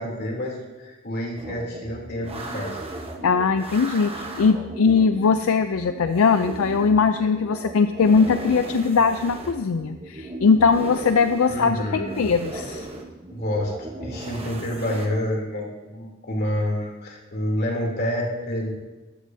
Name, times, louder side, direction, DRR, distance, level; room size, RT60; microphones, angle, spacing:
voice 1, 0.0-2.8 11.5-12.3 13.3-18.8, left 1 dB, 50° left, -2 dB, 3.0 m, -28 dB
sound 1, 1.3-15.1, right 2 dB, 30° right, 1.1 m, -37 dB
voice 2, 3.2-12.9, left 5 dB, 75° left, 9 dB, 0.4 m, -20 dB
14.0 x 12.5 x 2.7 m, 1.2 s
head